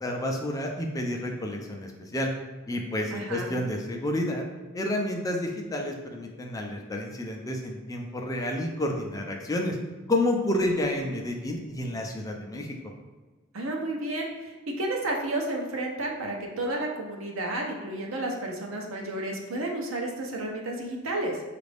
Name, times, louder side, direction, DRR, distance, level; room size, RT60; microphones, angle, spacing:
voice 1, 0.0-2.3 2.7-4.4 4.7-9.8 10.1-12.7, left 1 dB, 15° left, 1 dB, 0.4 m, -30 dB
voice 2, 3.1-3.5 13.5-21.4, right 1 dB, 70° right, 0 dB, 0.8 m, -31 dB
5.0 x 2.5 x 3.3 m, 1.3 s
head